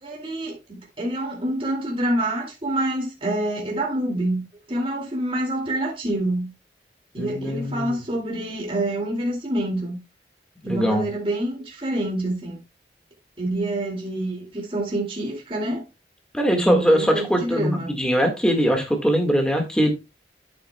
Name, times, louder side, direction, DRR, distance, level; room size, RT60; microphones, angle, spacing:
voice 1, 0.0-4.4 4.7-6.5 7.1-10.0 10.6-12.6 13.4-15.8 16.5-17.9, right 1 dB, 30° right, 2.3 m, -27 dB
voice 2, 7.2-8.0 10.7-11.0 16.3-19.9, equal, 5° left, 1.6 m, -21 dB
9.3 x 8.7 x 2.2 m
head